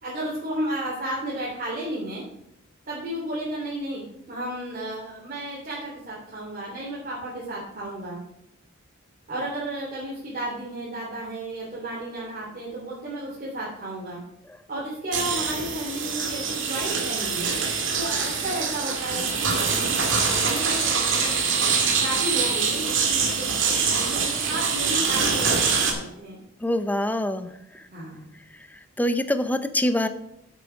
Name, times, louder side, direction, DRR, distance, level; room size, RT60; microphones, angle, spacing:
voice 1, 0.0-2.2 2.9-8.2 9.3-14.2 14.7-17.6 17.9-20.0 20.4-26.4 27.9-28.3, right 1 dB, 45° right, -7 dB, 3.3 m, -33 dB
sound 1, 15.1-25.9, right 5 dB, 65° right, 2.1 m, -24 dB
voice 2, 26.6-27.5 29.0-30.1, left 1 dB, 10° left, 10 dB, 0.6 m, -24 dB
8.3 x 8.2 x 5.2 m, 0.81 s
head